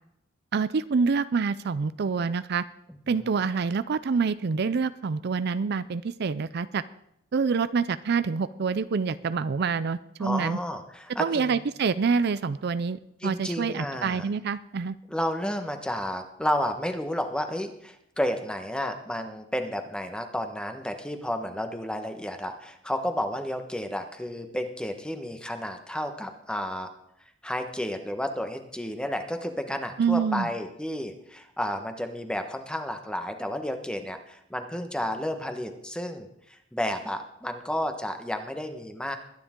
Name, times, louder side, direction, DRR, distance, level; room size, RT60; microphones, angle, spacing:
voice 1, 0.5-2.6 3.1-6.8 7.3-10.6 11.2-15.0 30.0-30.5, right 5 dB, 55° right, 14 dB, 0.5 m, -26 dB
voice 2, 10.2-11.6 13.2-14.2 15.1-26.9 27.4-39.2, left 1 dB, 5° left, 6 dB, 1.2 m, -31 dB
22.0 x 9.8 x 3.7 m, 0.76 s
head